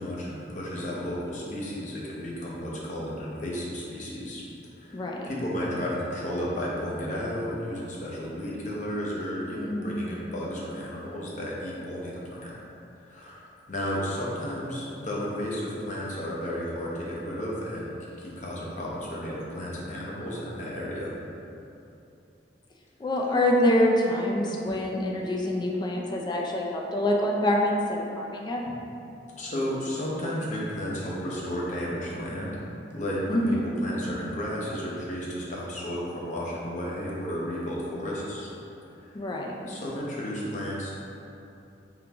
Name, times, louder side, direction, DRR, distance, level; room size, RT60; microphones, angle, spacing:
voice 1, 0.0-4.4 4.8-12.5 13.0-21.1 29.4-32.6 32.9-38.5 39.0-39.2 39.7-40.9, equal, 45° left, -5 dB, 0.8 m, -33 dB
voice 2, 4.9-5.3 9.6-10.0 23.0-28.6 33.3-33.7 39.1-39.6, left 1 dB, 25° left, -1 dB, 0.4 m, -26 dB
3.8 x 3.4 x 2.9 m, 2.8 s
head